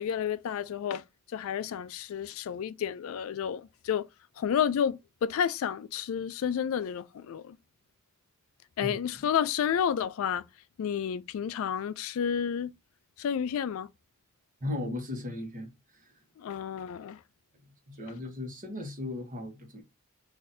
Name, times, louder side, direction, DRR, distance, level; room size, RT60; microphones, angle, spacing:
voice 1, 0.0-4.1 4.4-7.6 8.8-10.4 10.8-12.7 13.2-13.9 16.4-17.2, left 8 dB, 65° left, 0.3 m, -31 dB
voice 2, 14.6-16.1 17.9-19.8, left 2 dB, 35° right, 1.1 m, -37 dB
3.9 x 2.6 x 2.6 m
head